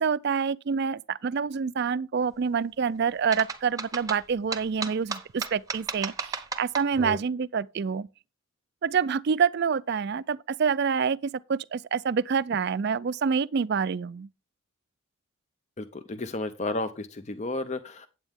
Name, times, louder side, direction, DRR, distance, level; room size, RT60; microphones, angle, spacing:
voice 1, 0.0-8.1 8.8-14.3, right 6 dB, 50° right, 0.4 m, -27 dB
sound 1, 3.3-7.2, right 4 dB, 15° right, 0.8 m, -34 dB
voice 2, 15.8-18.1, left 2 dB, 30° left, 0.5 m, -32 dB
9.1 x 8.8 x 3.5 m
head